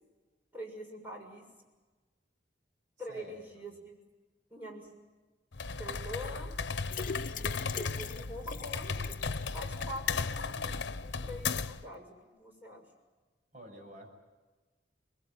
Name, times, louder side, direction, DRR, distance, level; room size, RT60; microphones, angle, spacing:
voice 1, 0.5-1.4 3.0-4.0 4.5-4.9 5.8-6.5 7.2-9.2 9.5-12.8, equal, 10° right, 0 dB, 6.7 m, -45 dB
voice 2, 3.1-3.6 13.5-14.1, right 1 dB, 45° right, 1 dB, 7.7 m, -49 dB
sound 1, 5.5-11.9, left 4 dB, 85° left, 0.9 m, -36 dB
sound 2, 6.8-10.0 10.3-10.4 10.7-10.8, left 5 dB, 50° left, 0.9 m, -42 dB
24.5 x 21.5 x 9.3 m, 1.3 s
head